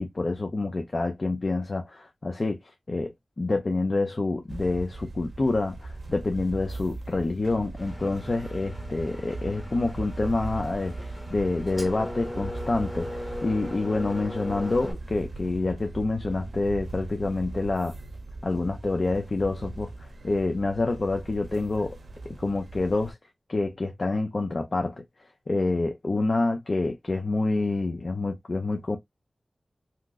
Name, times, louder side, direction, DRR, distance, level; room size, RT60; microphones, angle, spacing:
voice 1, 0.0-2.6 2.9-18.0 18.4-22.0 22.4-23.2 23.5-25.0 25.5-29.0, left 2 dB, 55° left, 0.6 m, -27 dB
sound 1, 4.5-23.1, right 2 dB, 75° right, 0.6 m, -39 dB
Engine, 7.8-14.9, left 1 dB, 15° left, 1.1 m, -39 dB
2.8 x 2.0 x 3.5 m
wide cardioid pair, 65°, 0 cm